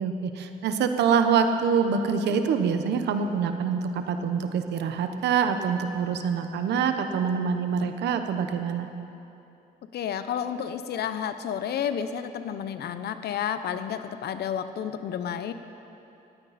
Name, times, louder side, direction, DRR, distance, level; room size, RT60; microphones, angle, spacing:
voice 1, 0.0-8.9, right 6 dB, 80° right, 7 dB, 1.1 m, -25 dB
voice 2, 9.9-15.5, left 8 dB, 65° left, 10 dB, 0.9 m, -31 dB
18.5 x 15.0 x 4.3 m, 2.9 s
cardioid pair, 90°, 18 cm